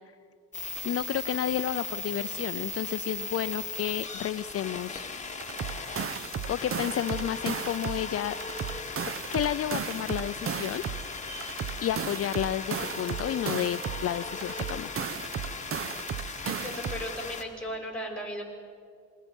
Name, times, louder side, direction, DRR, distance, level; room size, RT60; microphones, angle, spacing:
sound 1, 0.5-17.4, left 4 dB, 25° left, 2.0 m, -38 dB
voice 1, 0.8-5.1 6.3-8.4 9.3-10.8 11.8-14.9, left 11 dB, 50° left, 11 dB, 0.5 m, -31 dB
sound 2, 5.4-8.1 8.4-11.1 11.4-14.1 14.4-17.1, right 7 dB, 45° right, 0.9 m, -35 dB
sound 3, 10.3-13.8, right 2 dB, 85° right, 5.8 m, -52 dB
voice 2, 16.4-18.4, equal, 5° left, -1 dB, 6.2 m, -36 dB
27.5 x 22.0 x 5.4 m, 2.3 s
cardioid pair, 90°, 30 cm